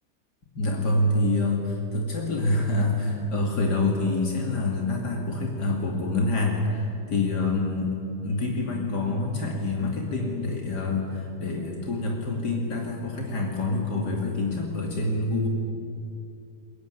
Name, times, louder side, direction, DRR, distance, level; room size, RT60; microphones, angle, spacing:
voice 1, 0.5-7.9 8.2-15.5, left 2 dB, 85° left, 0 dB, 3.2 m, -26 dB
22.0 x 22.0 x 9.9 m, 2.6 s
omnidirectional pair, 1.7 m